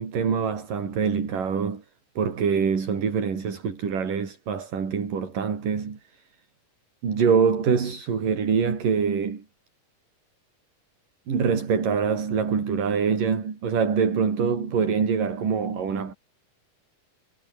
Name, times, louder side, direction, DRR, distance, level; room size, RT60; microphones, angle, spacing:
voice 1, 0.0-1.8 2.2-6.2 7.0-9.4 11.3-16.1, right 6 dB, 70° right, 5.7 m, -24 dB
omnidirectional pair, 3.9 m